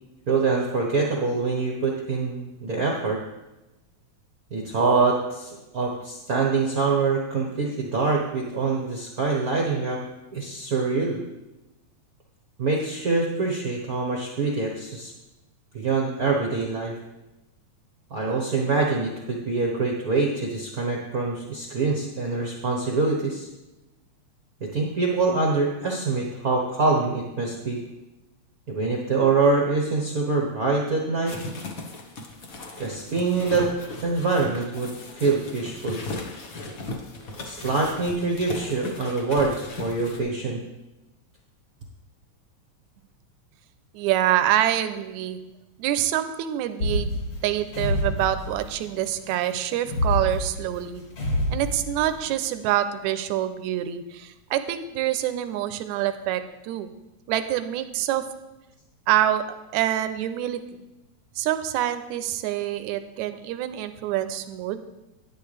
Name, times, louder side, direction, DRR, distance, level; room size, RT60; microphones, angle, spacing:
voice 1, 0.3-3.2 4.5-10.0 10.3-11.2 12.6-15.1 15.7-17.0 18.1-23.5 24.6-27.8 28.7-31.3 32.8-33.7 34.0-36.0 37.4-39.5 39.8-40.6, right 4 dB, 70° right, -1 dB, 0.8 m, -25 dB
sound 1, 31.3-40.2, left 2 dB, 90° left, 0.7 m, -37 dB
voice 2, 43.9-45.4 45.8-47.1 47.4-51.0 51.5-56.9 57.3-58.2 59.1-59.4 59.7-60.6 61.4-64.8, right 12 dB, 85° right, 10 dB, 1.9 m, -26 dB
sound 2, 46.8-49.0 49.8-52.3, left 1 dB, 55° left, 3.1 m, -27 dB
11.5 x 10.0 x 3.3 m, 1.0 s
omnidirectional pair, 3.3 m